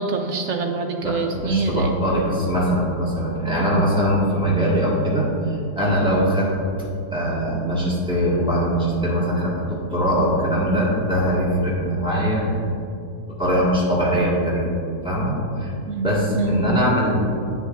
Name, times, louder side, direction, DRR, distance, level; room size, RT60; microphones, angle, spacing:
voice 1, 0.0-1.9 15.9-16.1 16.3-16.5, right 4 dB, 65° right, 3 dB, 0.8 m, -24 dB
voice 2, 1.0-5.3 5.7-6.5 7.1-12.5 13.4-14.8 15.0-15.7 16.0-17.2, equal, 5° right, -7 dB, 1.8 m, -21 dB
9.8 x 8.5 x 2.6 m, 2.6 s
omnidirectional pair, 1.6 m